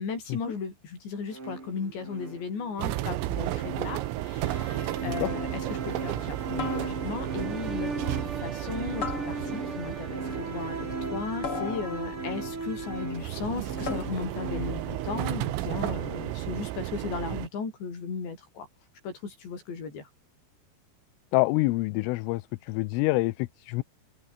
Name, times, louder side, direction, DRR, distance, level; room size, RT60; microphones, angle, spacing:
voice 1, 0.0-18.7 19.0-20.1, left 5 dB, 55° left, 8.7 m, -36 dB
sound 1, 1.3-15.2, right 3 dB, 25° right, 7.5 m, -37 dB
sound 2, 2.8-17.5, right 16 dB, 80° right, 3.9 m, -34 dB
sound 3, 4.8-5.1 6.6-7.4 9.0-9.8 11.4-12.4 13.8-14.4, left 5 dB, 30° left, 3.2 m, -37 dB
voice 2, 21.3-23.8, left 22 dB, 80° left, 3.2 m, -26 dB
open air
omnidirectional pair, 6.0 m